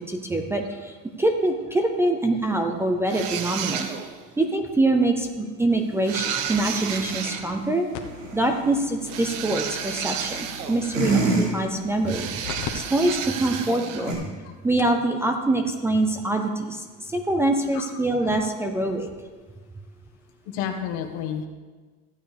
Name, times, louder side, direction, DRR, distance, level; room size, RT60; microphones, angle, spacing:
voice 1, 0.0-3.9 4.4-7.9 8.3-12.3 12.7-14.2 14.6-19.1, right 2 dB, 10° right, 4 dB, 0.4 m, -24 dB
sound 1, 3.1-4.2 6.0-7.5 9.1-11.1 12.1-14.1, right 8 dB, 80° right, 1.0 m, -32 dB
sound 2, 5.7-14.1, right 3 dB, 50° right, 3.8 m, -32 dB
sound 3, 7.9-12.7 13.1-13.2 13.8-13.9 14.5-14.6 14.8-15.0 16.3-16.4, left 9 dB, 50° left, 1.1 m, -41 dB
voice 2, 20.5-21.5, left 8 dB, 85° left, 5 dB, 1.4 m, -31 dB
14.5 x 8.7 x 3.3 m, 1.4 s
cardioid pair, 175°, 35 cm